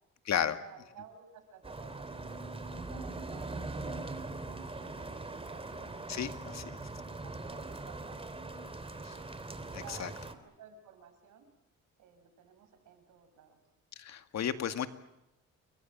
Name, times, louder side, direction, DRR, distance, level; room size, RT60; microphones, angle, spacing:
voice 1, 0.4-5.7 6.4-6.6 7.0-8.6 8.8-9.3 9.8-11.4 12.0-13.6, right 8 dB, 85° right, 7 dB, 6.8 m, -55 dB
sound 1, 1.6-10.3, right 2 dB, 20° right, 3.3 m, -41 dB
voice 2, 6.1-6.6 9.0-9.2 9.7-10.1 14.0-14.9, left 8 dB, 60° left, 8 dB, 2.1 m, -33 dB
29.5 x 22.5 x 7.5 m, 0.89 s
cardioid pair, 90°, 30 cm